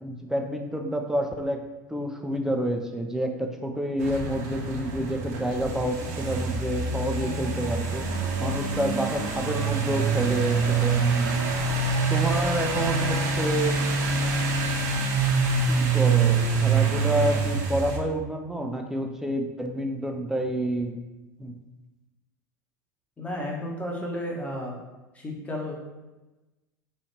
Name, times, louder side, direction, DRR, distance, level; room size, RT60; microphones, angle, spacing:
voice 1, 0.0-1.6 1.9-8.1 8.4-11.3 12.0-14.2 15.7-21.0 21.4-21.5, equal, 5° right, 3 dB, 0.4 m, -29 dB
sound 1, 4.0-18.0, right 4 dB, 60° right, 0.6 m, -25 dB
voice 2, 23.2-24.7 25.1-25.8, left 1 dB, 15° left, -2 dB, 0.8 m, -32 dB
3.1 x 2.4 x 4.2 m, 1.1 s
figure-of-eight pair, 80°, 10 cm